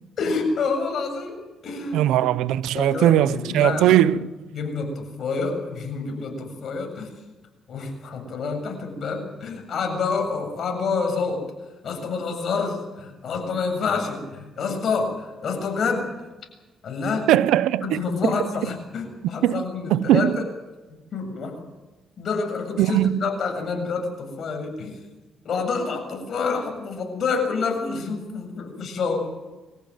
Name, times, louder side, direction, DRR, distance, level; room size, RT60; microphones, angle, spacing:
voice 1, 0.2-1.4 1.6-2.0 2.7-4.2 4.5-7.1 7.7-11.5 11.8-16.1 16.8-17.3 17.8-20.3 21.1-21.6 22.2-25.0 25.4-29.3, left 4 dB, 60° left, 7.5 m, -28 dB
voice 2, 1.9-4.2 17.3-18.3 19.4-19.6 19.9-20.4 22.8-23.2, right 13 dB, 90° right, 0.7 m, -19 dB
25.0 x 15.0 x 9.2 m
cardioid pair, 90°, 0 cm